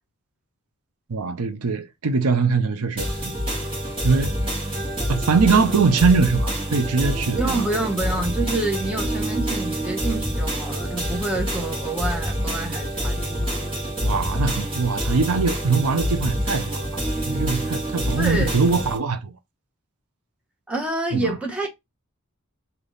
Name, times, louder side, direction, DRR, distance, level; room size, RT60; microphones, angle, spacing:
voice 1, 1.1-3.5 4.0-4.4 5.1-7.6 14.0-19.3 21.1-21.4, right 4 dB, 85° right, 0.6 m, -22 dB
sound 1, 3.0-19.0, equal, 25° right, 1.7 m, -27 dB
voice 2, 7.4-13.7 18.2-18.5 20.7-21.7, right 2 dB, 5° right, 0.9 m, -27 dB
3.4 x 2.8 x 3.9 m
head